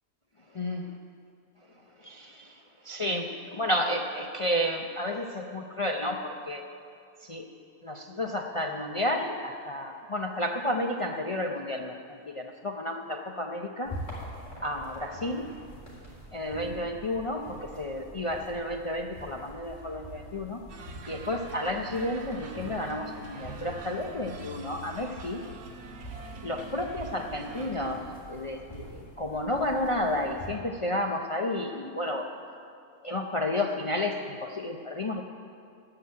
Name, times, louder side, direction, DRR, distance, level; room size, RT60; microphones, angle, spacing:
voice 1, 0.5-0.9 2.0-6.7 7.2-7.5 7.8-13.9 14.6-15.5 16.3-20.6 21.1-25.4 26.4-32.3 33.0-35.2, left 1 dB, 50° left, 2 dB, 0.3 m, -31 dB
sound 1, 13.8-30.5, right 1 dB, 20° left, 3.8 m, -45 dB
sound 2, 20.7-27.9, right 2 dB, 90° right, 1.5 m, -45 dB
14.5 x 5.9 x 9.5 m, 2.4 s
omnidirectional pair, 1.5 m